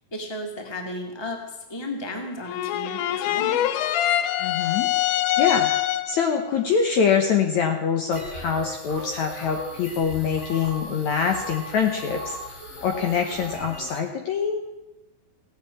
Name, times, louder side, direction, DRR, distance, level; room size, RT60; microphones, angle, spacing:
voice 1, 0.1-3.7, left 1 dB, 10° left, 2 dB, 1.7 m, -34 dB
sound 1, 2.5-6.3, left 13 dB, 80° left, 1.9 m, -24 dB
voice 2, 4.4-4.9 5.4-5.7 6.1-12.4 12.8-14.6, left 6 dB, 65° left, 4 dB, 2.1 m, -24 dB
sound 2, 8.1-14.0, left 1 dB, 45° left, 4.2 m, -37 dB
16.0 x 9.4 x 8.7 m, 1.0 s
omnidirectional pair, 4.2 m